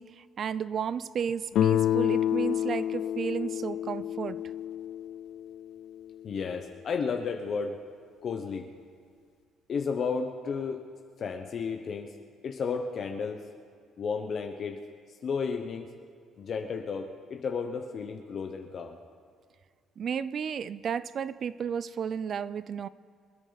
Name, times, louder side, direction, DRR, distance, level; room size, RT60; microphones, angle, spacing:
voice 1, 0.0-4.4 20.0-22.9, right 7 dB, 45° right, 17 dB, 0.4 m, -33 dB
Guitar, 1.5-6.3, left 11 dB, 70° left, 0.3 m, -29 dB
voice 2, 6.2-7.8 8.2-8.7 9.7-10.8 11.2-12.2 12.4-13.5 14.0-14.8 15.2-15.9 16.4-19.0, left 5 dB, 45° left, 3 dB, 0.9 m, -33 dB
24.5 x 9.9 x 4.0 m, 2.1 s
cardioid pair, 120°, 0 cm